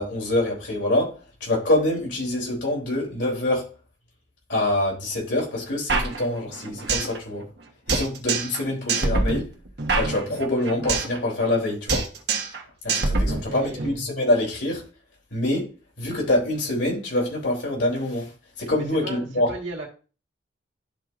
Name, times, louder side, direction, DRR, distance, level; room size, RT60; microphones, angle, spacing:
voice 1, 0.0-3.7 4.5-7.4 7.9-9.5 9.9-12.1 12.8-14.8 15.3-15.7 16.0-19.5, left 1 dB, 80° left, 3.3 m, -25 dB
sound 1, 5.9-7.2 7.4-7.5 7.9-8.6 8.9-11.2 11.4-11.6 11.9-12.6 12.9-13.9, right 3 dB, 65° right, 1.3 m, -25 dB
voice 2, 13.2-14.1 18.7-19.9, right 2 dB, 90° right, 1.8 m, -36 dB
12.5 x 4.5 x 2.6 m
head